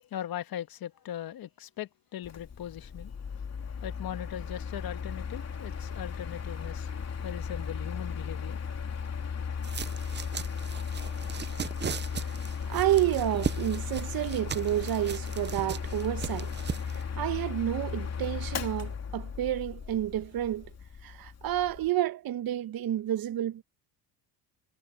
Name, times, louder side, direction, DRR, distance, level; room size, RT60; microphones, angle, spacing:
voice 1, 0.1-3.1 3.8-7.0 7.2-8.6, left 11 dB, 50° left, 1.7 m, -39 dB
Mechanical fan, 2.2-21.9, left 6 dB, 35° left, 3.2 m, -36 dB
sound 1, 9.6-17.0, right 7 dB, 25° right, 0.7 m, -38 dB
voice 2, 12.7-16.5 16.8-20.7 21.0-23.6, right 13 dB, 50° right, 1.3 m, -30 dB
supercardioid pair, 75°, 46 cm